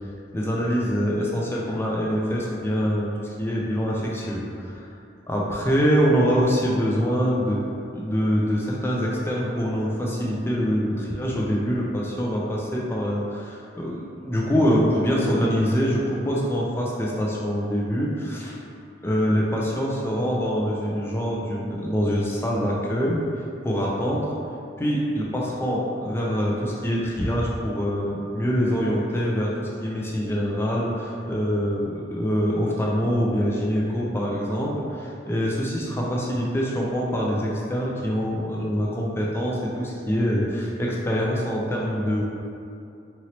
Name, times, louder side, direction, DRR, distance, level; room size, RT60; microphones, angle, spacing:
voice 1, 0.3-4.9 5.3-7.6 7.9-18.6 19.0-24.3 24.8-42.2, equal, 15° left, -4 dB, 0.4 m, -24 dB
3.0 x 2.8 x 2.8 m, 2.6 s
head